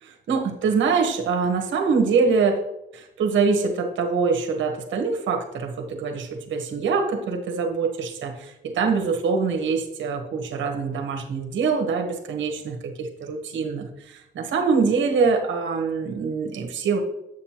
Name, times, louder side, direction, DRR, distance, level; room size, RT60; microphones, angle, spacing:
voice 1, 0.0-2.6 2.9-17.0, right 5 dB, 70° right, 4 dB, 1.2 m, -24 dB
8.0 x 6.4 x 2.9 m, 0.88 s
cardioid pair, 90°, 20 cm